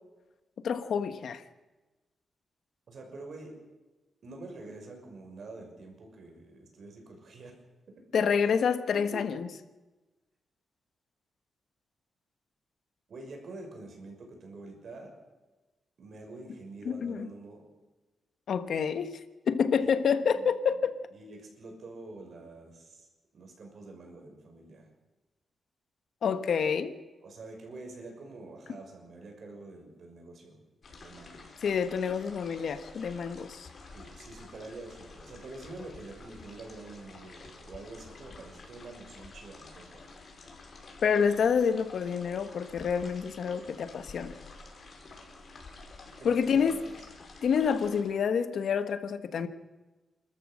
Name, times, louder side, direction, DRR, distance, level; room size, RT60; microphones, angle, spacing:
voice 1, 0.6-1.4 8.1-9.5 16.8-17.3 18.5-19.1 19.5-21.0 26.2-26.9 31.6-33.7 41.0-44.4 46.2-46.7 47.4-49.5, left 6 dB, 70° left, 10 dB, 1.4 m, -28 dB
voice 2, 2.9-3.5 4.2-7.5 7.9-8.4 8.9-9.4 13.1-15.1 16.0-17.6 19.8-23.1 23.3-24.9 27.2-30.6 31.0-31.4 33.9-40.0 46.2-46.9, right 2 dB, 60° right, 3 dB, 6.2 m, -46 dB
sound 1, 30.8-48.0, left 3 dB, 50° left, 4.8 m, -50 dB
29.5 x 13.5 x 6.5 m, 1.2 s
cardioid pair, 95°, 0 cm